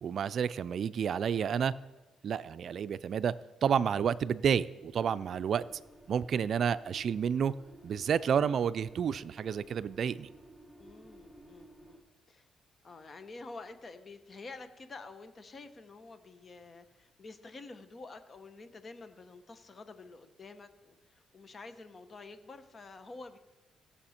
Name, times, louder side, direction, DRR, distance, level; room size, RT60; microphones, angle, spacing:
voice 1, 0.0-1.7 2.2-3.3 3.6-5.6 6.1-7.5 7.8-10.3, right 7 dB, 60° right, 16 dB, 0.4 m, -30 dB
sound 1, 4.9-12.0, right 1 dB, 5° left, 1.9 m, -55 dB
voice 2, 10.8-12.5 12.8-23.4, left 3 dB, 40° left, 10 dB, 1.0 m, -49 dB
17.0 x 6.9 x 4.4 m, 1.1 s
cardioid pair, 90°, 0 cm